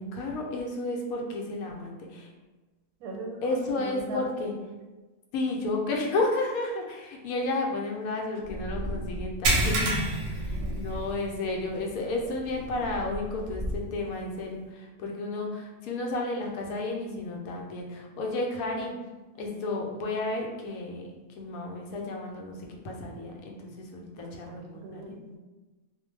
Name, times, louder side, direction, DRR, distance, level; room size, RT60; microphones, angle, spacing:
voice 1, 0.0-2.3 3.4-4.5 5.3-10.0 10.3-18.9 19.4-21.1 21.4-25.1, left 2 dB, 80° left, 0 dB, 1.0 m, -32 dB
voice 2, 3.0-4.2 10.3-10.8 24.2-25.4, right 2 dB, 90° right, 1 dB, 1.1 m, -40 dB
Purr, 8.4-9.5 10.2-11.3 12.0-14.1, equal, 35° right, 0.6 m, -36 dB
sound 1, 9.4-11.3 11.7-11.9 12.4-12.5 14.1-14.2, right 2 dB, 70° right, 0.8 m, -27 dB
2.5 x 2.1 x 3.1 m, 1.2 s
omnidirectional pair, 1.5 m